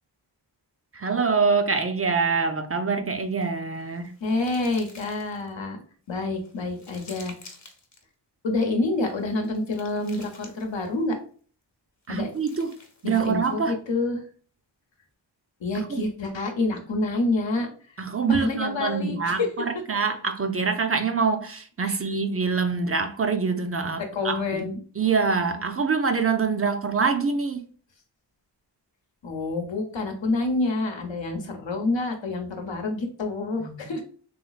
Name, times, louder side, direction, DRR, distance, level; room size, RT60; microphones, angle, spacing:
voice 1, 0.9-4.1 12.1-12.7 13.0-13.8 15.7-16.0 18.0-24.7 25.0-27.7 33.6-33.8, right 5 dB, 35° right, 0.4 m, -25 dB
sound 1, 3.3-5.5 6.1-8.0 8.9-11.1 12.0-13.6, left 3 dB, 40° left, 0.8 m, -50 dB
voice 2, 4.2-5.8 6.1-7.3 8.4-11.2 12.1-12.3 13.0-14.3 15.6-18.0 18.3-19.5 21.9-22.0 24.0-24.8 25.4-25.8 29.2-34.0, left 2 dB, 85° left, 0.8 m, -28 dB
3.2 x 3.1 x 2.4 m
wide cardioid pair, 55°, 43 cm